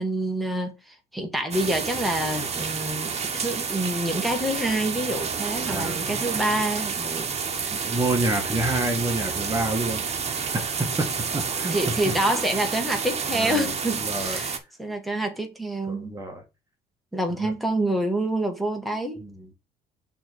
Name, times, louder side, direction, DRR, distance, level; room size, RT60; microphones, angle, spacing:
voice 1, 0.0-7.9 11.7-16.1 17.1-19.2, right 1 dB, ahead, 1.8 m, -27 dB
sound 1, 1.5-14.6, right 6 dB, 40° right, 1.4 m, -29 dB
voice 2, 5.6-6.2 7.7-10.0 10.5-12.1 13.3-13.7 14.0-14.4 15.9-16.4 17.4-17.5 19.2-19.5, right 2 dB, 20° right, 1.5 m, -28 dB
6.0 x 3.6 x 6.1 m
cardioid pair, 110°, 17 cm